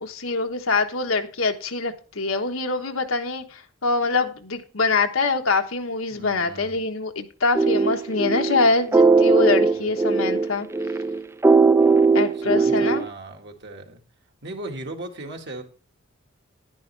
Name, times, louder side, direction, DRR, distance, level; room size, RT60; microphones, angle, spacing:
voice 1, 0.0-10.7 12.1-13.1, left 3 dB, 90° left, 5 dB, 1.3 m, -24 dB
voice 2, 6.1-6.7 12.3-14.0 14.4-15.6, right 2 dB, 60° right, 2 dB, 1.9 m, -37 dB
sound 1, 7.5-13.1, right 4 dB, 15° right, 0.4 m, -19 dB
10.5 x 10.5 x 3.3 m, 0.37 s
head